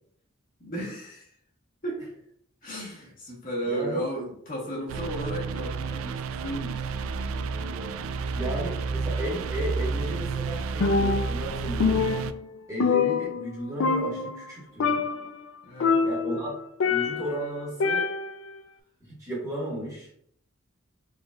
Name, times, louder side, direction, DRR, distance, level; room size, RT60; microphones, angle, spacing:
voice 1, 0.6-1.3 1.8-2.1 2.6-8.6 15.6-16.0, right 1 dB, 40° left, -4 dB, 1.2 m, -35 dB
voice 2, 3.6-4.0 8.3-12.1 12.7-15.0 16.0-16.6 16.8-18.1 19.1-20.1, right 1 dB, 15° right, -5 dB, 1.7 m, -34 dB
sound 1, 4.9-12.3, right 4 dB, 85° right, 0.3 m, -31 dB
Percussion, 10.8-11.5 11.8-13.6 13.8-14.5 14.8-15.3 15.8-17.4 17.8-18.5, left 4 dB, 70° left, 0.4 m, -25 dB
5.0 x 3.7 x 2.4 m, 0.67 s
head